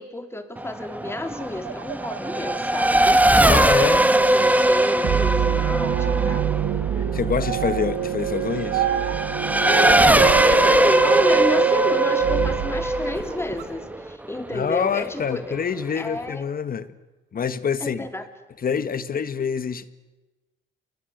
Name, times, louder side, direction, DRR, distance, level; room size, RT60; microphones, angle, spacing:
voice 1, 0.0-6.6 9.7-15.6 15.9-16.5 17.8-18.3, left 1 dB, 10° left, 3.6 m, -31 dB
Race car auto racing / Accelerating revving vroom, 0.6-14.6, right 1 dB, 10° right, 1.4 m, -20 dB
sound 1, 0.9-4.1 4.5-5.4 5.8-6.4 7.4-8.0 8.7-9.3 10.0-11.1 11.5-12.5 13.0-13.7, right 10 dB, 90° right, 2.2 m, -33 dB
voice 2, 3.4-4.1 7.0-8.9 14.5-16.9 17.3-18.1 18.6-19.9, left 7 dB, 45° left, 1.7 m, -26 dB
sound 2, 5.0-13.7, right 9 dB, 65° right, 2.3 m, -25 dB
29.5 x 22.0 x 8.1 m
cardioid pair, 90°, 20 cm